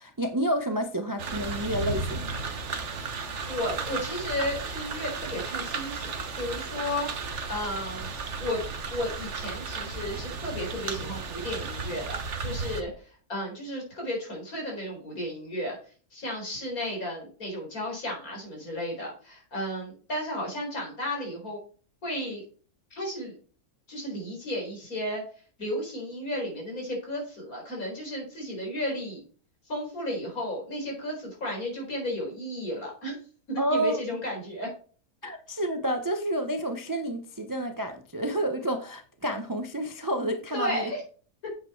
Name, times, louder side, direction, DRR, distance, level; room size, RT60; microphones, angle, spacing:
voice 1, 0.0-2.4 33.6-34.0 35.2-40.9, right 1 dB, 25° right, 0.5 m, -29 dB
sound 1, 1.2-12.8, right 4 dB, 50° right, 1.3 m, -34 dB
voice 2, 3.0-8.1 8.4-8.6 8.9-15.8 16.1-21.6 22.0-22.4 22.9-23.3 23.9-25.2 25.6-29.2 29.7-33.2 33.5-34.7 40.5-41.0, left 1 dB, 60° left, 4.9 m, -33 dB
8.8 x 7.7 x 4.5 m
omnidirectional pair, 1.7 m